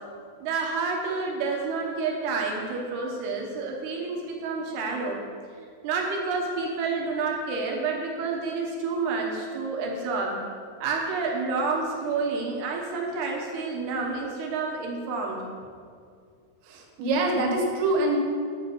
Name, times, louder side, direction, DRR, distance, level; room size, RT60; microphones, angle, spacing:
voice 1, 0.4-5.2 5.8-10.4 10.8-15.5, right 4 dB, 70° right, 0 dB, 2.6 m, -29 dB
voice 2, 16.6-18.2, right 2 dB, 90° right, 1 dB, 3.9 m, -25 dB
11.0 x 5.5 x 7.0 m, 2.2 s
omnidirectional pair, 5.7 m